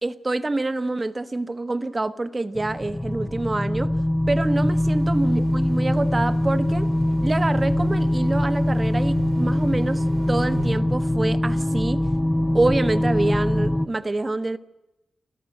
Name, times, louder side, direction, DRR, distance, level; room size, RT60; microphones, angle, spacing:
voice 1, 0.0-3.9 4.3-6.9 7.2-12.1 12.5-14.6, right 2 dB, 25° right, 1.2 m, -26 dB
sound 1, 2.5-13.9, left 1 dB, 15° left, 0.8 m, -23 dB
sound 2, 4.3-10.8, right 2 dB, 75° right, 3.4 m, -39 dB
29.0 x 13.0 x 7.9 m
cardioid pair, 70°, 0 cm